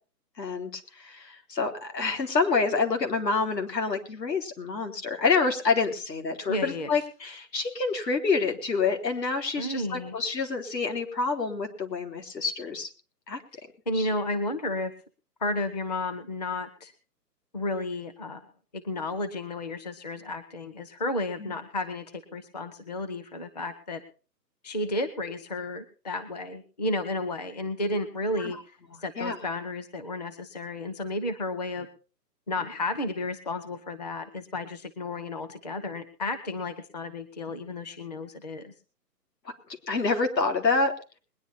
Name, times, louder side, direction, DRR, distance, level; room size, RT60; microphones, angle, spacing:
voice 1, 0.4-12.9 13.3-13.4 13.9-14.1 21.4-21.5 28.4-28.6 29.2-29.4 39.9-40.9, left 4 dB, 75° left, 5 dB, 3.7 m, -27 dB
voice 2, 6.5-6.9 9.6-10.2 13.9-14.9 15.4-16.9 17.5-18.4 18.7-22.1 22.3-24.0 24.6-31.9 32.5-38.7, left 2 dB, 25° left, 11 dB, 0.7 m, -32 dB
21.0 x 10.0 x 4.2 m, 0.35 s
hypercardioid pair, 165°, 49 cm